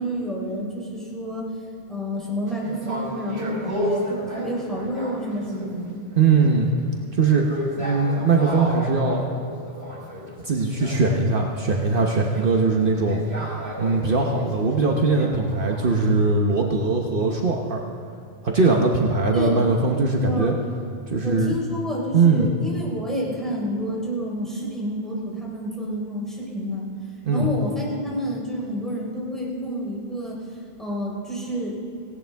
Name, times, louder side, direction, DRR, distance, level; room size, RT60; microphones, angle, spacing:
voice 1, 0.0-1.5 1.9-6.0 19.2-19.7 20.2-20.5 21.2-26.9 27.3-30.4 30.8-31.8, equal, ahead, -4 dB, 3.7 m, -29 dB
sound 1, 2.5-5.8 6.1-16.1, equal, 90° right, 4.0 m, -34 dB
voice 2, 6.2-6.7 7.1-7.5 7.8-9.3 10.4-13.2 13.8-17.8 18.4-20.5 21.1-21.5 22.1-22.5 27.2-27.5, right 4 dB, 60° right, 0 dB, 1.2 m, -20 dB
18.0 x 17.0 x 3.5 m, 2.6 s
omnidirectional pair, 1.0 m